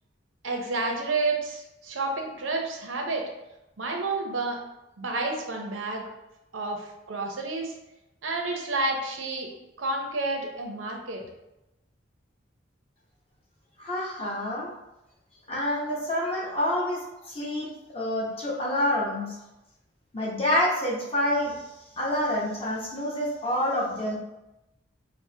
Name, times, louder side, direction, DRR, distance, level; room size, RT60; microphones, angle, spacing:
voice 1, 0.4-3.2 3.8-4.6 5.0-6.0 6.5-7.7 8.2-9.5 9.8-11.2, right 3 dB, 90° right, 2 dB, 0.6 m, -30 dB
voice 2, 13.8-14.7 15.5-19.4 20.1-21.6 22.0-24.2, left 1 dB, 30° left, -5 dB, 0.8 m, -27 dB
4.6 x 2.1 x 2.7 m, 0.93 s
head